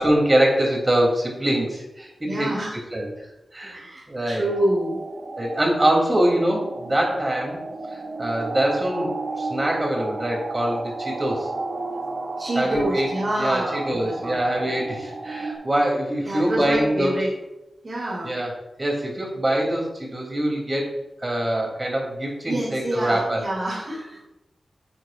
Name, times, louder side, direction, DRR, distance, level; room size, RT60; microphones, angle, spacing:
voice 1, 0.0-3.1 3.5-3.8 4.1-4.5 5.4-7.6 7.9-11.5 12.5-13.1 13.4-17.2 18.2-18.5 18.8-20.9 21.2-23.4, right 1 dB, 25° right, 0 dB, 3.0 m, -24 dB
voice 2, 2.3-2.8 3.7-5.0 12.4-14.4 16.2-17.3 17.8-18.3 22.5-24.2, right 1 dB, 45° right, -5 dB, 2.8 m, -27 dB
sound 1, 4.5-15.6, right 3 dB, 90° right, 2.3 m, -33 dB
9.7 x 9.1 x 2.5 m, 0.96 s
wide cardioid pair, 75°, 0 cm